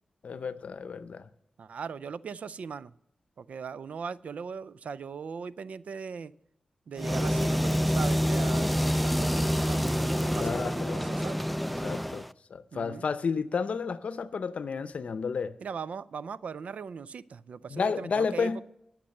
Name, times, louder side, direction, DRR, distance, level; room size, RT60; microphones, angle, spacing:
voice 1, 0.2-1.3 10.4-11.0 11.8-12.2 12.5-15.5 17.7-18.6, left 5 dB, 70° left, 0.6 m, -31 dB
voice 2, 1.6-2.9 3.4-6.3 6.9-11.4 12.7-13.1 15.6-18.6, right 6 dB, 75° right, 0.4 m, -39 dB
sound 1, 7.0-12.3, equal, ahead, 0.3 m, -27 dB
11.5 x 6.6 x 6.6 m
cardioid pair, 65°, 2 cm